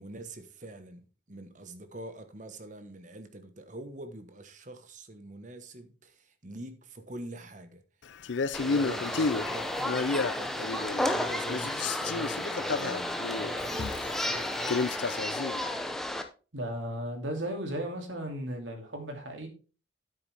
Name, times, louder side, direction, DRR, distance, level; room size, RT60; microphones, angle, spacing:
voice 1, 0.0-7.8 8.6-15.1, right 1 dB, 40° right, 1.3 m, -44 dB
Male speech man speaking, 8.2-11.2 11.5-15.6, left 4 dB, 80° left, 0.6 m, -32 dB
sound 1, 8.5-16.2, left 1 dB, ahead, 0.9 m, -33 dB
voice 2, 16.5-19.5, equal, 90° right, 2.7 m, -35 dB
9.7 x 8.5 x 3.5 m
head